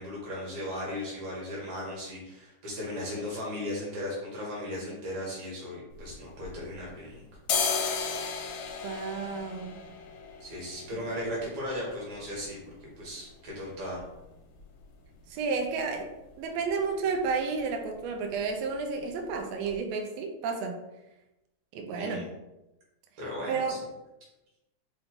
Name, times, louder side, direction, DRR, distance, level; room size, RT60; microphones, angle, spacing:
voice 1, 0.0-7.2 10.4-14.0 22.0-22.3 23.2-23.8, left 1 dB, 70° right, -4 dB, 2.8 m, -37 dB
sound 1, 5.9-7.0 7.3-15.0 15.3-15.4 15.7-16.3 16.6-16.8 17.1-17.3 17.6-18.3 18.6-18.8 19.3-19.4 19.7-19.8, left 6 dB, 85° left, 2.1 m, -36 dB
voice 2, 8.8-9.8 15.3-20.7 21.7-22.3 23.5-23.8, right 4 dB, 85° right, 3 dB, 1.5 m, -31 dB
5.5 x 2.3 x 3.7 m, 0.97 s
omnidirectional pair, 3.5 m